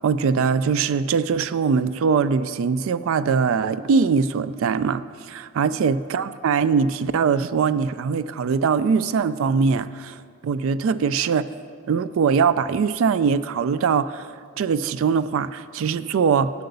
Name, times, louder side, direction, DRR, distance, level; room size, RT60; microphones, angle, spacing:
voice 1, 0.0-11.4 11.9-14.3 14.6-16.5, right 5 dB, 65° right, 15 dB, 0.3 m, -22 dB
8.5 x 7.8 x 6.8 m, 2.2 s
head